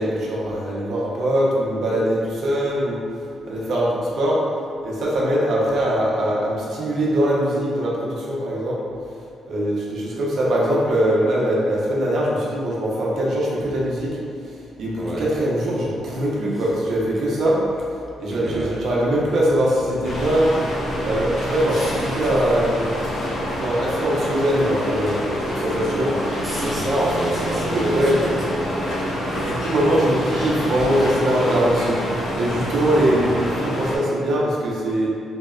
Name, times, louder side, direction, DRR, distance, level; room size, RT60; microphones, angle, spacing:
voice 1, 0.0-3.0 3.5-4.4 4.8-8.8 9.5-14.1 14.8-17.6 18.2-20.5 21.0-22.9 23.6-26.1 26.7-26.8 27.5-28.3 29.4-32.0 32.3-35.1, right 1 dB, 65° right, -5 dB, 0.5 m, -22 dB
voice 2, 15.0-15.3 18.3-18.7 26.4-28.4 28.7-29.0, right 1 dB, 15° right, -3 dB, 0.3 m, -27 dB
sound 1, 20.0-34.0, equal, 55° left, 0.6 m, -27 dB
2.7 x 2.1 x 2.3 m, 2.4 s
cardioid pair, 90°, 0 cm